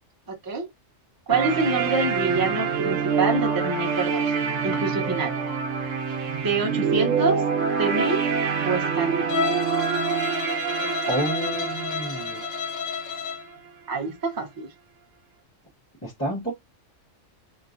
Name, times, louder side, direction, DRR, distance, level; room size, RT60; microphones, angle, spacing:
voice 1, 0.3-0.7 1.3-4.3 4.6-5.4 6.4-7.4 7.8-8.2 8.6-9.3 10.8-10.9 13.9-14.7, right 3 dB, 20° right, 0.7 m, -26 dB
sound 1, 1.3-13.3, right 6 dB, 75° right, 1.1 m, -26 dB
Bowed string instrument, 9.3-13.5, left 7 dB, 90° left, 1.1 m, -31 dB
voice 2, 11.1-12.4 16.0-16.5, right 1 dB, 15° left, 1.1 m, -29 dB
2.9 x 2.8 x 2.5 m
omnidirectional pair, 1.3 m